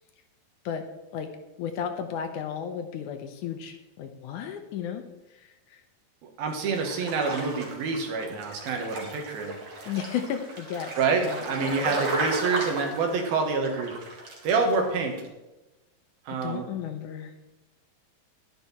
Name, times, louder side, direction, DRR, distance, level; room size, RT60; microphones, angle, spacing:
voice 1, 1.6-5.0 5.4-5.8 9.8-12.0 16.4-17.3, left 8 dB, 75° left, 7 dB, 2.1 m, -34 dB
voice 2, 6.2-9.5 11.0-13.9 14.4-15.1 16.3-16.7, right 4 dB, 90° right, 3 dB, 3.6 m, -27 dB
sound 1, 6.5-14.9 15.1-15.3, right 2 dB, 50° right, 3.0 m, -35 dB
11.5 x 10.5 x 4.3 m, 1.0 s
omnidirectional pair, 4.1 m